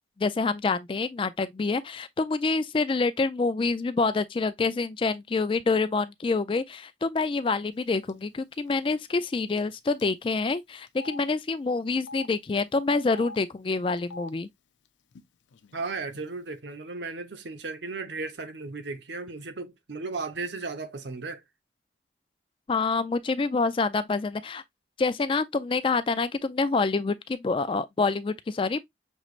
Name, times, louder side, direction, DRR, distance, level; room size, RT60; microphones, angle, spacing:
voice 1, 0.2-14.5 22.7-24.6 25.0-28.8, left 3 dB, 30° left, 0.3 m, -27 dB
Telephone, 8.1-8.3 8.5-8.7 9.6-9.7 10.0-10.1 10.9-11.2 11.9-12.3 13.0-13.4 14.0-14.3 15.1-15.2 15.5-16.2, left 2 dB, 85° left, 0.5 m, -43 dB
voice 2, 15.7-21.4, right 3 dB, 75° right, 0.8 m, -35 dB
6.2 x 3.1 x 2.4 m
head